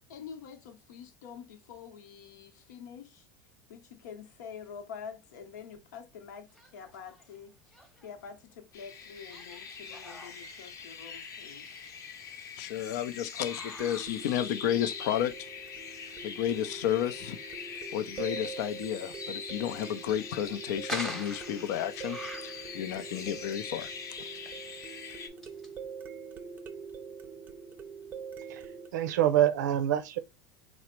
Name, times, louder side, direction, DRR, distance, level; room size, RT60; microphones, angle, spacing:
voice 1, 0.0-3.3 3.7-7.5 8.0-11.7, left 7 dB, 90° left, 0.9 m, -47 dB
sound 1, 6.5-7.4 7.7-8.2 9.3-12.7 13.2-14.8 15.4-15.5 16.1-16.2 19.1-19.3 19.8-23.0 23.4-23.6 24.1-25.7, left 1 dB, 5° left, 0.8 m, -45 dB
sound 2, 8.7-25.3, left 6 dB, 35° left, 0.7 m, -43 dB
sound 3, 9.1-9.2 13.8-28.9, right 6 dB, 20° right, 0.5 m, -44 dB
voice 2, 12.6-15.5 16.2-17.4 17.9-23.9, left 11 dB, 70° left, 0.5 m, -32 dB
voice 3, 28.9-30.2, right 11 dB, 90° right, 0.6 m, -25 dB
3.9 x 2.0 x 4.4 m
supercardioid pair, 135°, 9 cm